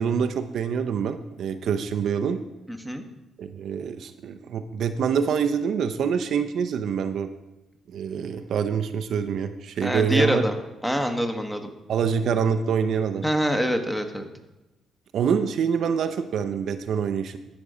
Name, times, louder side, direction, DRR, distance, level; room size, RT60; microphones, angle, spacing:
voice 1, 0.0-2.4 3.4-7.3 7.9-10.4 11.9-13.2 15.1-17.4, right 7 dB, 65° right, 9 dB, 0.6 m, -25 dB
voice 2, 2.7-3.0 9.8-10.5 10.8-11.7 13.2-14.3, equal, 5° left, 5 dB, 1.2 m, -25 dB
13.5 x 5.3 x 4.9 m, 1.0 s
cardioid pair, 90°, 0 cm